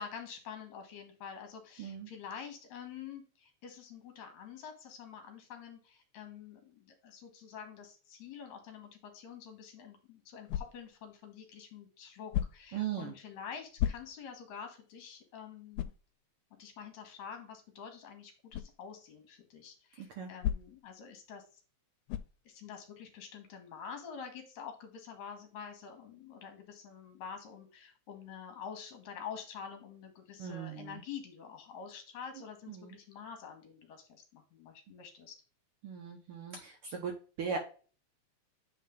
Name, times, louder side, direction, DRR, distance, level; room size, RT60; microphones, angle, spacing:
voice 1, 0.0-15.9 16.6-21.6 22.4-35.4, left 7 dB, 70° left, 6 dB, 2.7 m, -47 dB
voice 2, 1.8-2.1 12.7-13.1 20.0-20.3 30.4-31.0 32.7-33.0 35.8-37.6, right 7 dB, 65° right, 4 dB, 1.4 m, -39 dB
sound 1, 10.5-11.0 12.3-12.8 13.8-14.4 14.9-15.0 15.7-16.1 18.5-18.8 20.4-20.9 22.1-22.4, left 11 dB, 85° left, 2.0 m, -35 dB
8.4 x 3.7 x 3.6 m, 0.38 s
omnidirectional pair, 3.3 m